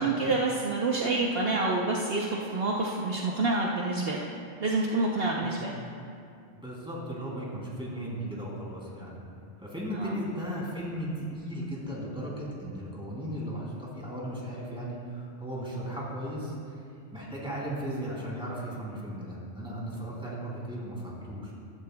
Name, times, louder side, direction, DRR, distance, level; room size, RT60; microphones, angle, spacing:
voice 1, 0.0-4.3 4.6-5.8 9.9-10.1, right 3 dB, 60° right, -2 dB, 1.0 m, -28 dB
voice 2, 6.5-9.2 9.6-16.8 17.1-21.5, right 1 dB, 5° right, -5 dB, 2.8 m, -36 dB
14.5 x 13.0 x 2.2 m, 2.4 s
omnidirectional pair, 1.2 m